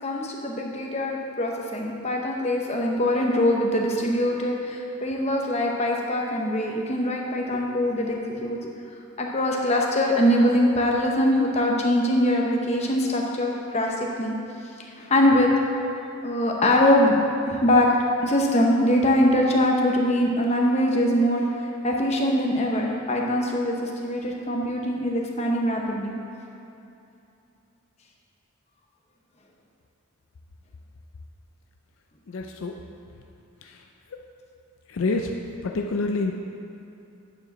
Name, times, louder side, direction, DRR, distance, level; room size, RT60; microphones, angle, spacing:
voice 1, 0.0-8.7 9.2-14.4 15.0-15.5 16.2-17.2 17.5-26.2, left 1 dB, 30° left, 0 dB, 0.9 m, -23 dB
voice 2, 32.3-32.7 33.6-33.8 34.1-34.2 34.9-36.3, left 3 dB, 65° left, 3 dB, 0.4 m, -28 dB
9.3 x 4.8 x 6.0 m, 2.8 s
head